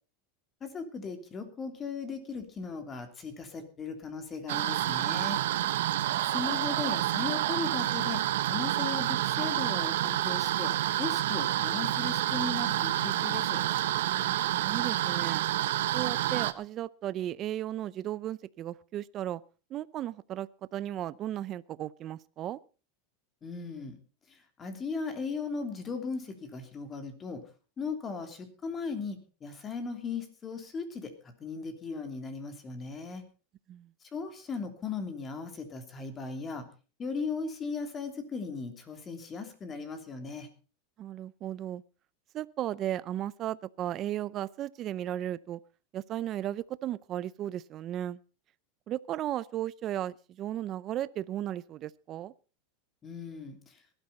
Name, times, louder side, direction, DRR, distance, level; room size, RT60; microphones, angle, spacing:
voice 1, 0.6-5.4 6.2-8.2 8.5-13.6 23.4-24.0 24.3-27.4 27.8-31.1 31.4-33.2 34.1-36.7 37.0-40.5 53.0-53.8, left 4 dB, 25° left, 3.0 m, -37 dB
sound 1, 4.5-16.5, right 13 dB, 85° right, 1.1 m, -29 dB
voice 2, 14.2-15.4 15.9-19.4 19.7-22.6 33.7-33.9 41.0-41.8 42.3-45.6 45.9-48.2 48.9-52.3, right 12 dB, 35° right, 0.6 m, -35 dB
18.5 x 12.5 x 4.1 m
supercardioid pair, 140°, 0 cm